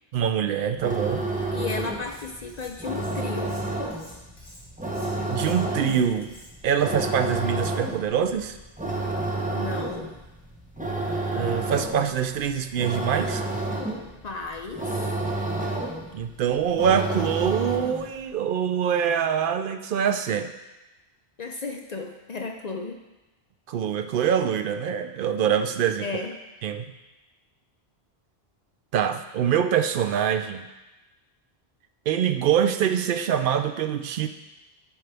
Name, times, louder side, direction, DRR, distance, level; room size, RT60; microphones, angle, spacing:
voice 1, 0.1-1.3 5.3-6.3 6.6-8.6 11.3-13.4 16.1-20.5 23.7-26.1 26.6-26.9 28.9-30.7 32.1-34.3, right 8 dB, 60° right, 8 dB, 0.7 m, -24 dB
sound 1, 0.7-18.1, right 2 dB, 10° right, 0.8 m, -30 dB
voice 2, 1.5-3.6 9.5-10.1 14.2-15.1 21.4-23.0 26.0-26.4, left 4 dB, 50° left, 3 dB, 0.6 m, -34 dB
Cutlery silverware, 2.0-2.7 2.9-6.8, left 1 dB, 75° left, 3.0 m, -50 dB
10.5 x 4.8 x 3.4 m, 1.0 s
omnidirectional pair, 1.1 m